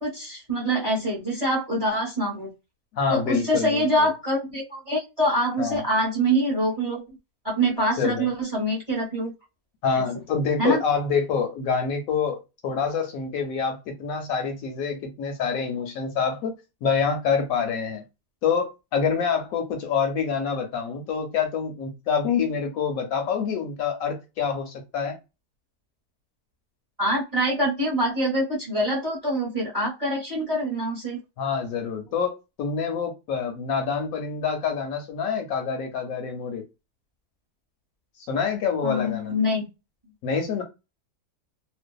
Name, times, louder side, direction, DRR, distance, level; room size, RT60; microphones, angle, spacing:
voice 1, 0.0-2.5 3.1-7.0 7.4-9.3 10.6-10.8 27.0-31.2 38.8-39.6, right 1 dB, 30° right, 0.8 m, -25 dB
voice 2, 2.9-3.9 5.6-5.8 8.0-8.3 9.8-16.5 16.8-18.0 18.4-25.2 31.4-36.6 38.3-39.3 40.2-40.6, left 6 dB, 70° left, 0.9 m, -26 dB
2.5 x 2.2 x 2.2 m
omnidirectional pair, 1.6 m